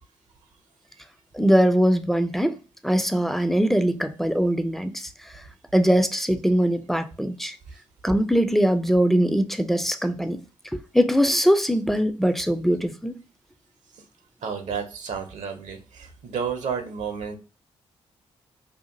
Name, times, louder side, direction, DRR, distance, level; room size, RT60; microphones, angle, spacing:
voice 1, 1.3-2.6 2.8-5.4 5.7-7.6 8.0-10.4 10.7-13.2, equal, ahead, 0.4 m, -22 dB
voice 2, 14.4-17.4, right 6 dB, 60° right, 0.7 m, -31 dB
2.7 x 2.4 x 2.5 m
hypercardioid pair, 40°, 14 cm